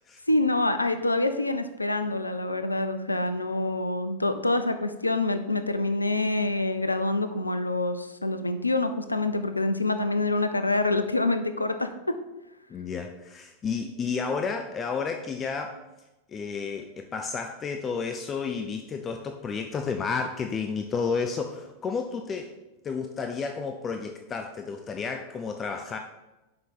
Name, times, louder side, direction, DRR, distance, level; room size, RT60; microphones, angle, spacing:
voice 1, 0.3-12.2, left 2 dB, 85° left, 9 dB, 0.5 m, -26 dB
voice 2, 12.7-15.8 16.3-22.5 22.8-26.0, left 5 dB, 25° left, 5 dB, 0.6 m, -31 dB
5.8 x 5.7 x 6.7 m, 1.0 s
figure-of-eight pair, 90°, 0 cm